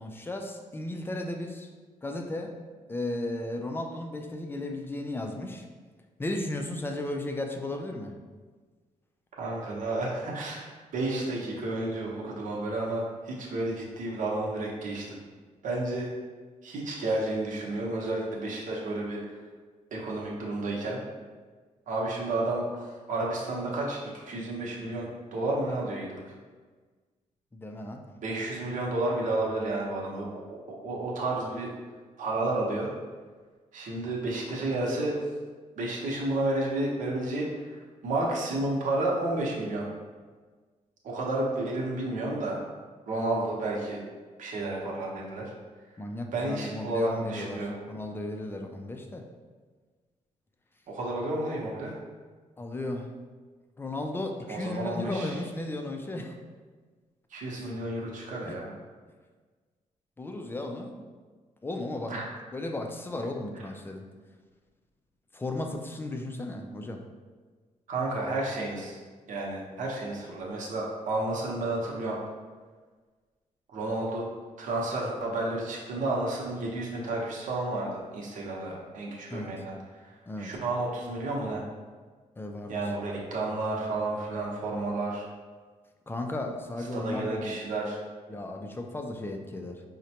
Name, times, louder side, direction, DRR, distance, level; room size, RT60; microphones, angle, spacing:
voice 1, 0.0-1.7 2.0-2.6 2.9-5.7 6.2-8.1 27.5-28.0 46.0-49.3 52.6-53.2 53.8-56.3 58.4-58.6 60.2-61.0 61.6-62.2 62.5-64.1 65.3-67.0 79.3-79.5 80.3-80.5 82.4-82.7 86.1-87.6 88.3-89.8, left 2 dB, 15° left, 3 dB, 0.3 m, -35 dB
voice 2, 9.4-15.2 15.6-16.1 16.6-19.4 19.9-21.0 21.9-26.3 28.2-31.7 32.2-32.9 33.7-35.2 35.8-39.8 41.0-42.6 43.1-44.0 44.4-45.5 46.3-47.7 50.9-52.0 54.5-55.4 57.3-58.7 62.1-62.3 67.9-69.0 69.3-72.2 73.7-74.3 74.6-79.7 80.0-81.6 82.7-85.3 86.9-88.0, right 2 dB, 65° right, -3 dB, 0.8 m, -31 dB
4.9 x 2.1 x 2.8 m, 1.4 s
cardioid pair, 115°, 14 cm